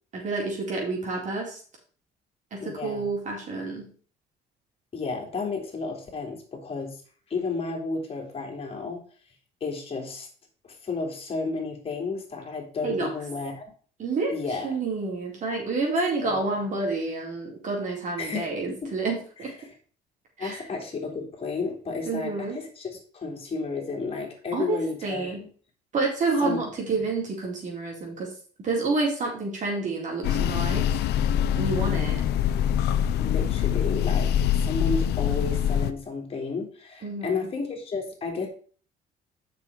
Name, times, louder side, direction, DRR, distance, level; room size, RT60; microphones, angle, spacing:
voice 1, 0.1-1.6 2.5-3.9 12.8-13.1 14.0-14.3 14.6-19.5 20.4-20.6 22.1-22.6 24.5-25.5 25.9-28.3 28.6-30.9 31.6-32.1 37.0-37.5, right 3 dB, 45° right, -1 dB, 4.2 m, -29 dB
voice 2, 2.6-3.1 4.9-7.0 7.3-9.0 9.6-10.3 10.6-13.6 14.3-14.7 16.2-16.6 18.2-18.9 19.4-19.7 20.4-25.5 26.4-26.6 26.9-27.0 31.8-32.0 33.2-38.5, left 4 dB, 35° left, 2 dB, 3.0 m, -32 dB
sound 1, 30.2-35.9, left 9 dB, 75° left, 0.7 m, -24 dB
7.3 x 6.3 x 4.8 m, 0.42 s
cardioid pair, 110°, 17 cm